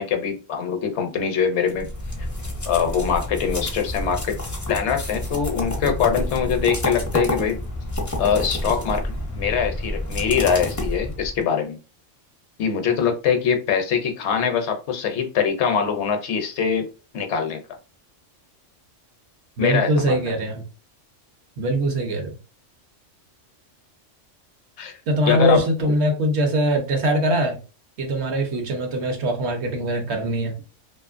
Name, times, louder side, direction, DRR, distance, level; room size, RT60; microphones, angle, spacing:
voice 1, 0.0-1.9 2.7-4.4 4.7-7.6 8.2-11.8 12.6-16.8 17.1-17.6 19.6-20.3 24.8-24.9 25.3-25.7, left 7 dB, 70° left, 0.8 m, -23 dB
sound 1, 1.7-11.4, left 1 dB, 25° left, 0.4 m, -29 dB
voice 2, 19.6-20.6 21.6-22.4 25.1-27.6 28.0-30.6, right 1 dB, 65° right, 0.9 m, -22 dB
2.6 x 2.4 x 2.4 m
omnidirectional pair, 1.3 m